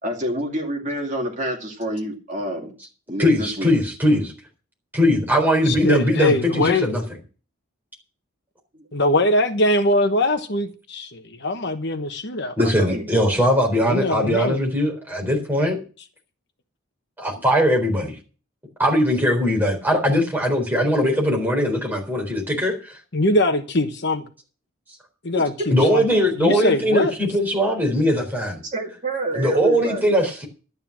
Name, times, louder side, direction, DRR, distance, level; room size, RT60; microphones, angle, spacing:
voice 1, 0.0-2.7 3.1-3.7 12.6-13.1 25.4-25.7 28.6-30.1, right 1 dB, 35° right, 2.5 m, -28 dB
voice 2, 3.2-4.3 4.9-7.0 12.6-15.8 17.2-18.1 18.8-22.9 25.7-28.6 29.3-30.5, equal, 10° right, 4.0 m, -20 dB
voice 3, 5.7-6.9 8.9-12.5 13.8-14.6 23.1-24.2 25.2-26.1 26.4-27.1, left 1 dB, 50° left, 1.1 m, -22 dB
12.0 x 9.5 x 6.1 m
head